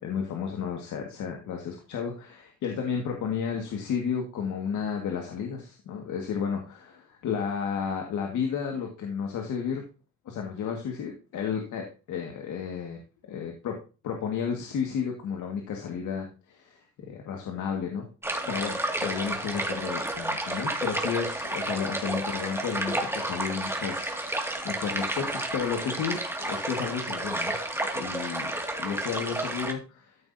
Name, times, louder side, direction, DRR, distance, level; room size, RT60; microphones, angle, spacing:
voice 1, 0.0-9.8 10.3-13.0 13.3-13.8 14.0-18.0 18.5-27.6 27.9-28.5 28.8-30.2, left 7 dB, 75° left, 2 dB, 1.9 m, -32 dB
sound 1, 18.2-29.7, right 1 dB, 10° right, 2.2 m, -31 dB
14.0 x 5.9 x 2.8 m, 0.33 s
cardioid pair, 90°, 30 cm